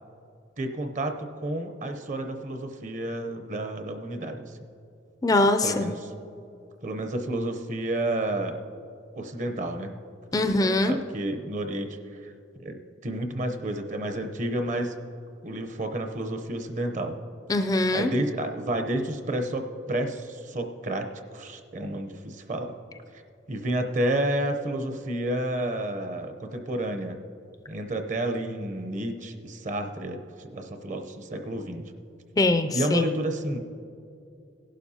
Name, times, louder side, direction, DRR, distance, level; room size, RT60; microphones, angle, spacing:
voice 1, 0.6-4.6 5.6-6.1 6.8-8.6 9.2-10.0 10.4-12.0 12.2-12.3 12.6-14.9 15.4-17.1 17.9-22.8 23.5-27.2 27.7-31.9 32.7-33.6, right 1 dB, 45° right, 6 dB, 0.8 m, -30 dB
voice 2, 5.2-5.9 10.3-10.9 17.5-18.1 32.4-33.1, left 2 dB, 20° left, 7 dB, 0.4 m, -22 dB
18.0 x 11.5 x 2.8 m, 2.6 s
head